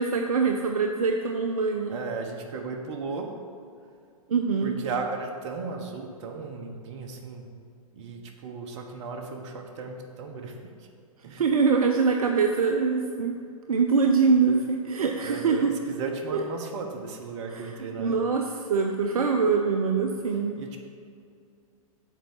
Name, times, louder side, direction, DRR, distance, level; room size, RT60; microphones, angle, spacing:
voice 1, 0.0-2.0 4.3-4.7 11.3-13.4 13.7-15.7 16.3-16.4 17.5-17.6 18.0-20.6, right 5 dB, 75° right, 3 dB, 0.6 m, -24 dB
voice 2, 1.9-3.3 4.6-7.4 7.9-10.9 11.2-11.5 15.2-18.2 20.5-20.8, right 4 dB, 50° right, 3 dB, 1.2 m, -35 dB
7.3 x 4.8 x 7.1 m, 2.4 s
hypercardioid pair, 115°, 19 cm